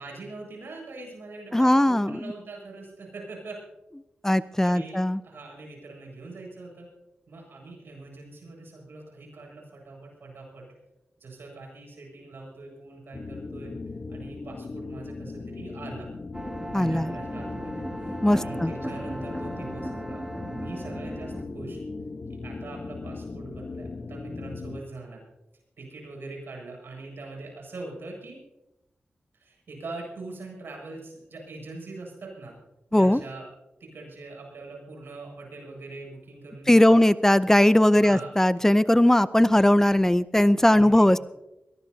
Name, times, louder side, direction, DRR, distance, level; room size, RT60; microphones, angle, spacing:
voice 1, 0.0-3.6 4.3-6.9 7.3-10.7 11.2-13.7 14.1-16.1 16.7-20.2 20.5-21.8 22.4-25.2 25.8-28.4 29.3-32.5 32.9-33.5 33.8-37.0 37.9-38.3 40.6-41.2, right 3 dB, 80° right, 0 dB, 7.7 m, -42 dB
voice 2, 1.5-2.3 4.2-5.2 16.7-17.1 18.2-18.7 32.9-33.2 36.7-41.2, left 1 dB, 10° left, 14 dB, 0.6 m, -19 dB
sound 1, 13.1-24.8, left 3 dB, 55° left, 1.0 m, -38 dB
sound 2, 16.3-21.5, right 1 dB, 15° right, 2.3 m, -36 dB
22.0 x 18.5 x 2.8 m, 0.92 s
cardioid pair, 50°, 4 cm